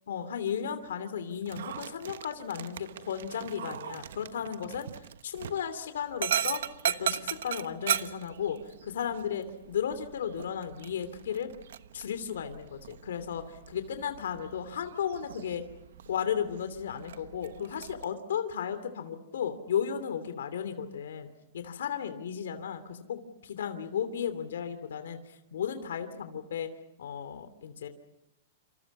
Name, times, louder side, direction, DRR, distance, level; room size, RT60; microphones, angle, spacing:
voice 1, 0.1-4.9 5.2-6.6 7.0-11.5 11.9-15.6 16.1-21.3 21.5-26.7 27.0-27.9, left 8 dB, 85° left, 9 dB, 2.9 m, -34 dB
Dog, 1.4-18.0, right 10 dB, 80° right, 1.2 m, -38 dB
28.0 x 27.5 x 5.5 m, 0.87 s
supercardioid pair, 170°, 0 cm